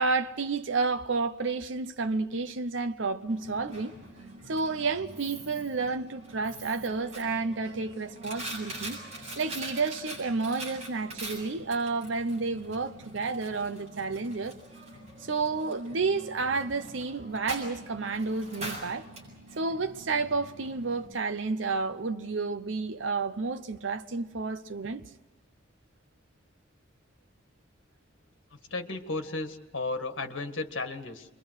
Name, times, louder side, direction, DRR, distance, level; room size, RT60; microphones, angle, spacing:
voice 1, 0.0-3.9 4.5-9.0 9.4-14.6 15.2-19.1 19.6-25.1, right 4 dB, 75° right, 0.8 m, -31 dB
Coin (dropping), 3.3-21.1, right 1 dB, 35° right, 7.6 m, -44 dB
voice 2, 28.7-31.4, left 3 dB, 85° left, 1.7 m, -34 dB
28.0 x 23.5 x 6.4 m
head